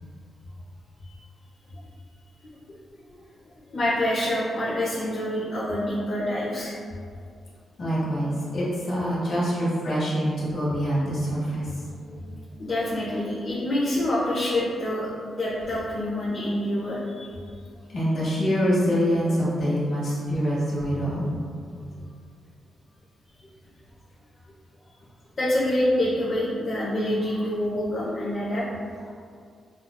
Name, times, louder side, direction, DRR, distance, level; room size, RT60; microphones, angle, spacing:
voice 1, 3.7-6.7 12.6-15.1 15.4-17.4 25.4-28.7, left 1 dB, 45° left, -9 dB, 0.8 m, -26 dB
voice 2, 7.8-11.7 12.0-12.2 17.9-21.3, equal, 65° left, -7 dB, 1.5 m, -25 dB
5.5 x 2.3 x 2.2 m, 2.2 s
cardioid pair, 100°, 0 cm